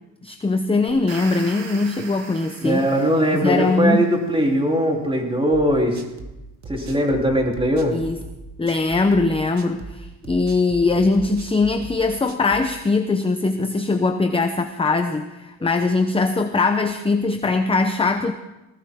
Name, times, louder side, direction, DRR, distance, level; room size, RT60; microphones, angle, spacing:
voice 1, 0.2-2.9 3.4-4.1 7.9-8.2 8.6-18.3, left 3 dB, 10° left, 7 dB, 0.8 m, -21 dB
sound 1, 0.9-4.1, right 5 dB, 85° right, 3.5 m, -40 dB
voice 2, 2.6-6.0 6.7-8.0, equal, 10° right, 0 dB, 3.4 m, -20 dB
sound 2, 5.5-12.7, right 3 dB, 40° right, 1.9 m, -38 dB
19.0 x 18.5 x 3.7 m, 1.0 s
cardioid pair, 115°, 44 cm